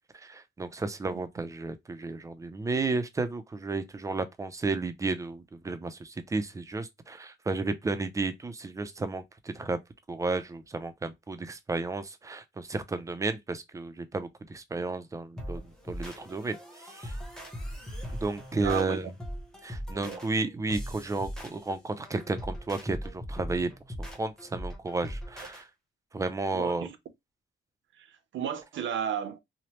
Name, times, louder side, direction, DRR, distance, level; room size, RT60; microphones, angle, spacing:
voice 1, 0.1-9.8 10.1-17.2 18.1-19.1 19.6-23.7 24.0-25.7 26.1-26.9, right 3 dB, 15° right, 0.3 m, -33 dB
voice 2, 1.0-1.4 18.6-19.0 19.9-20.2 26.5-27.0 28.0-29.4, right 8 dB, 70° right, 0.6 m, -34 dB
sound 1, 15.4-25.6, equal, 5° left, 0.7 m, -40 dB
3.0 x 2.0 x 2.8 m
wide cardioid pair, 145°, 20 cm